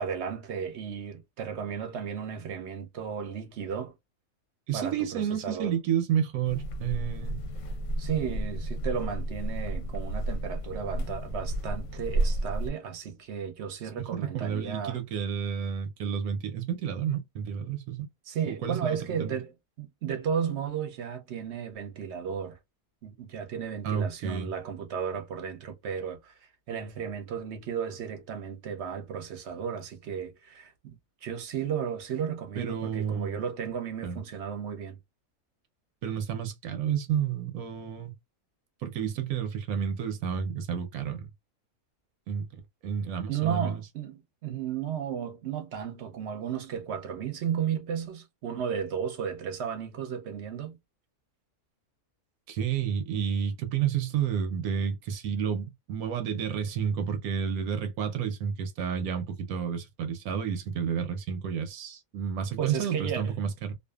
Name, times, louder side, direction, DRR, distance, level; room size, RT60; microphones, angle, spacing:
voice 1, 0.0-3.9 4.7-5.8 8.0-15.0 18.3-22.6 23.0-35.0 43.3-50.8 62.6-63.3, right 7 dB, 60° right, 0.8 m, -34 dB
voice 2, 4.7-7.4 14.1-18.1 18.5-19.3 23.8-24.5 32.6-33.4 34.0-34.2 36.0-38.1 38.8-41.3 42.3-42.5 42.8-43.8 52.5-63.7, right 8 dB, 80° right, 1.0 m, -30 dB
sound 1, 6.5-12.7, right 1 dB, 65° left, 0.8 m, -32 dB
2.5 x 2.3 x 2.2 m
omnidirectional pair, 1.5 m